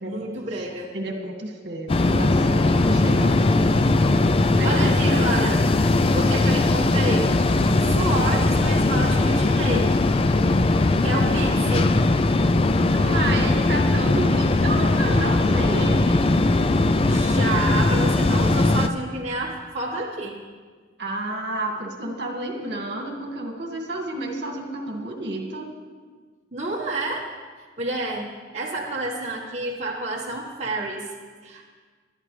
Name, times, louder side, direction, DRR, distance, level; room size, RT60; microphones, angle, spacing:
voice 1, 0.0-1.2 4.5-5.6 6.1-7.3 7.8-9.9 11.0-12.0 17.0-20.4 26.5-27.3 27.8-31.0 31.4-31.6, right 2 dB, 35° right, -5 dB, 1.4 m, -29 dB
voice 2, 0.9-3.4 4.5-5.4 12.9-16.3 21.0-25.7, right 1 dB, 60° right, 1 dB, 1.9 m, -30 dB
sound 1, 1.9-18.9, left 2 dB, 30° left, 0.3 m, -19 dB
21.0 x 12.0 x 3.3 m, 1.5 s
head